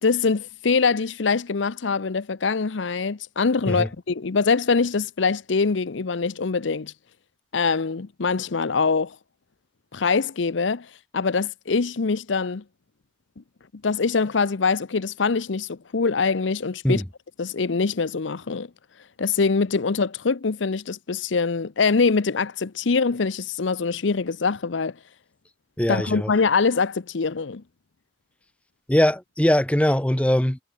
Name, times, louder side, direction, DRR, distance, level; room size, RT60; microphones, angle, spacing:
voice 1, 0.0-6.9 7.5-9.2 9.9-10.9 11.1-12.6 13.8-17.0 17.4-18.7 19.2-24.9 25.9-27.6, left 4 dB, 75° left, 0.7 m, -23 dB
voice 2, 25.8-26.3 28.9-30.6, left 1 dB, 5° left, 0.6 m, -21 dB
head